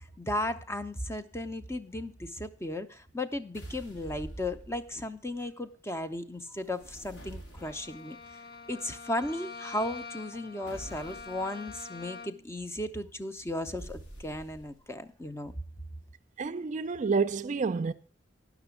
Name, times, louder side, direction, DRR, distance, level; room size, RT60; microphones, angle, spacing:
voice 1, 0.0-8.4 8.7-15.5, left 1 dB, 15° left, 0.6 m, -35 dB
sound 1, 3.5-5.2 6.6-8.1 10.7-11.5 13.8-14.9, right 1 dB, 85° left, 2.5 m, -47 dB
Bowed string instrument, 7.5-12.5, left 4 dB, 60° left, 0.6 m, -45 dB
voice 2, 16.4-17.9, right 4 dB, 40° right, 0.4 m, -29 dB
10.5 x 6.0 x 6.9 m
head